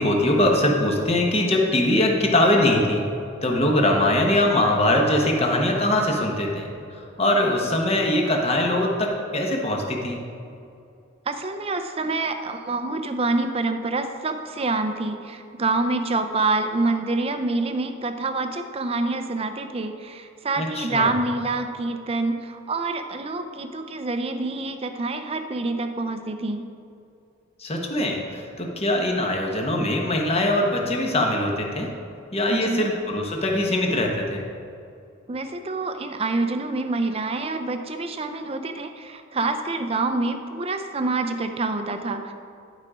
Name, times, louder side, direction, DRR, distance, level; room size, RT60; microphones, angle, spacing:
voice 1, 0.0-3.0 3.4-10.2 20.6-21.1 27.6-31.9 32.3-34.4, left 1 dB, 30° left, 0 dB, 1.1 m, -22 dB
voice 2, 11.3-26.7 32.5-32.8 35.3-42.3, right 3 dB, 30° right, 7 dB, 0.5 m, -26 dB
11.5 x 4.9 x 4.9 m, 2.6 s
head